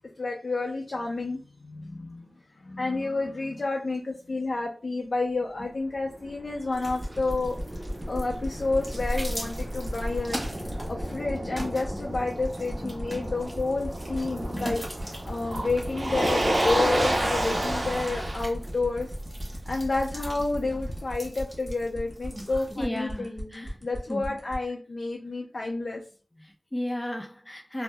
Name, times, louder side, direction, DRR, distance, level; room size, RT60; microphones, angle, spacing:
voice 1, 0.2-2.3 2.6-7.6 8.1-10.4 10.9-14.8 15.2-19.1 19.7-26.0, left 3 dB, 80° left, 0.5 m, -30 dB
Motor vehicle (road), 5.9-21.0, right 1 dB, 65° right, 0.7 m, -32 dB
sound 1, 6.7-22.8, equal, 30° right, 1.0 m, -40 dB
sound 2, 6.9-24.5, right 1 dB, ahead, 1.2 m, -40 dB
voice 2, 12.6-12.9 14.5-14.7 22.8-24.2 26.4-27.8, left 1 dB, 20° left, 0.5 m, -35 dB
2.7 x 2.0 x 3.3 m
wide cardioid pair, 60°, 0 cm